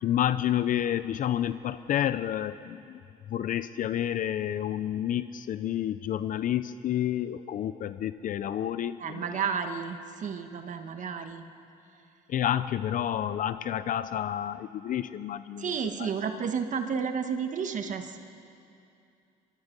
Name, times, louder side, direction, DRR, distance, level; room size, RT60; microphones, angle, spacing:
voice 1, 0.0-3.0 3.3-9.4 12.3-15.7 16.0-16.1, left 11 dB, 50° left, 13 dB, 0.6 m, -29 dB
voice 2, 9.0-11.4 15.6-18.2, right 6 dB, 50° right, 7 dB, 1.4 m, -32 dB
23.5 x 23.0 x 5.4 m, 2.6 s
cardioid pair, 110°, 17 cm